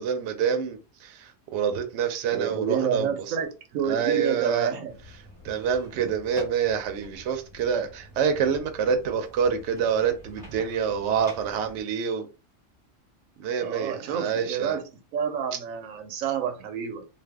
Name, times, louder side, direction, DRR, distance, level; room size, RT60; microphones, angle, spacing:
voice 1, 0.0-3.3 3.9-4.7 5.4-12.3 13.4-14.8 15.5-15.6, right 7 dB, 70° right, 0.8 m, -27 dB
voice 2, 2.3-4.9 5.9-6.1 13.6-14.8 15.1-17.0, right 7 dB, 90° right, 1.0 m, -29 dB
sound 1, 4.9-11.8, left 1 dB, 5° left, 1.2 m, -46 dB
2.6 x 2.2 x 3.4 m
omnidirectional pair, 1.3 m